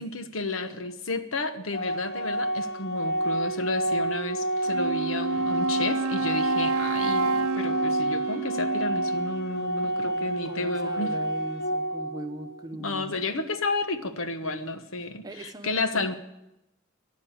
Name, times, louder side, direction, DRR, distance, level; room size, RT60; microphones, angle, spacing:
voice 1, 0.0-11.1 12.7-16.1, left 2 dB, 75° left, 9 dB, 1.1 m, -31 dB
Organ, 1.7-12.7, right 1 dB, 50° left, 0.9 m, -29 dB
Wind instrument woodwind instrument, 4.6-9.6, right 4 dB, 90° right, 0.5 m, -30 dB
voice 2, 9.8-13.2 14.4-14.7 15.2-16.1, right 1 dB, 20° right, 7 dB, 0.9 m, -40 dB
15.0 x 10.5 x 8.8 m, 0.93 s
head